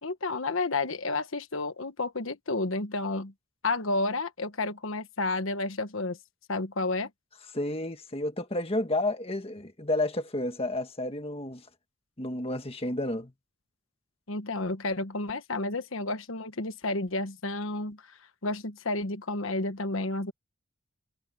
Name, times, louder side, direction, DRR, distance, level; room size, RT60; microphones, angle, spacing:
voice 1, 0.0-3.3 3.6-6.2 6.5-7.1 14.3-18.0 18.4-20.3, left 2 dB, 70° left, 1.3 m, -31 dB
voice 2, 7.5-11.6 12.2-13.3, left 1 dB, 25° left, 1.6 m, -31 dB
head